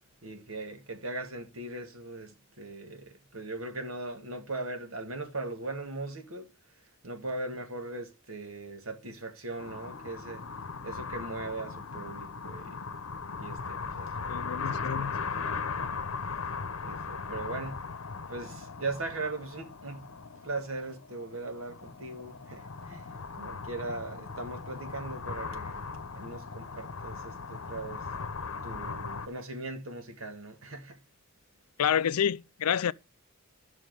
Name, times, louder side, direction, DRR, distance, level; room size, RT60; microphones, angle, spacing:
voice 1, 0.2-6.5 7.0-10.4 10.8-12.8 13.4-14.2 14.5-15.9 16.8-17.8 18.3-20.1 20.4-25.9 26.1-28.1 28.6-31.0, right 2 dB, 65° right, 1.8 m, -39 dB
sound 1, 9.6-29.3, left 5 dB, 65° left, 0.9 m, -38 dB
voice 2, 14.3-15.2 31.8-32.9, left 8 dB, 90° left, 0.4 m, -28 dB
11.5 x 6.2 x 4.7 m
head